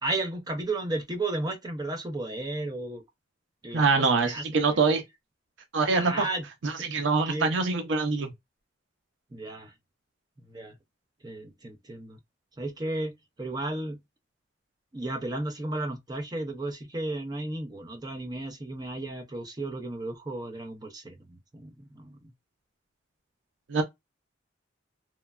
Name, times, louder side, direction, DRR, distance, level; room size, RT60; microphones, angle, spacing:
voice 1, 0.0-3.0 3.6-4.8 5.9-6.5 6.8-7.5 9.3-9.7 10.5-10.8 11.2-12.2 12.6-13.1 13.4-14.0 14.9-22.3, right 2 dB, 20° right, 0.5 m, -34 dB
voice 2, 3.7-5.0 5.7-6.3 6.6-8.3 23.7-23.8, right 4 dB, 80° right, 0.5 m, -24 dB
3.0 x 2.2 x 2.2 m
head